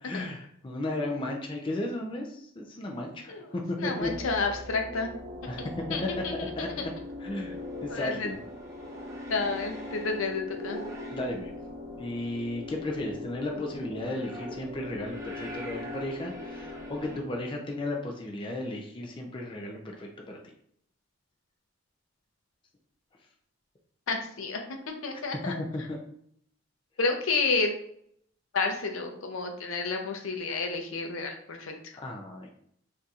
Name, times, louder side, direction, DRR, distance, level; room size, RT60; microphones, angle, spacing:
voice 1, 0.0-4.1 5.5-5.6 6.6-6.7 7.2-7.5 7.8-8.4 11.1-11.5 12.0-20.4 25.5-26.0 32.0-32.5, left 1 dB, 25° left, 1 dB, 0.4 m, -34 dB
voice 2, 3.3-5.1 5.6-6.9 7.9-8.3 9.3-10.8 24.1-25.5 27.0-27.7 28.5-31.7, left 4 dB, 80° left, 4 dB, 0.5 m, -31 dB
sound 1, 4.0-17.2, left 2 dB, 15° right, 0.6 m, -40 dB
4.1 x 2.6 x 2.4 m, 0.69 s
head